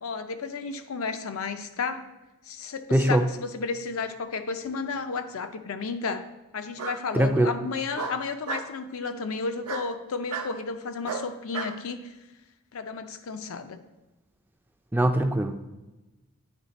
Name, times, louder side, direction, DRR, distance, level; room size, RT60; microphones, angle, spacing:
voice 1, 0.0-2.1 2.5-6.3 6.5-12.1 12.7-13.8, left 4 dB, 70° left, 8 dB, 0.5 m, -32 dB
voice 2, 2.9-3.2 7.1-7.5 14.9-15.5, right 1 dB, 10° right, 6 dB, 0.3 m, -22 dB
Bark, 4.6-5.3 6.8-7.0 8.0-8.7 9.6-9.9 10.3-10.5 11.0-11.8, right 4 dB, 85° right, 0.7 m, -33 dB
9.2 x 3.2 x 4.0 m, 1.1 s
head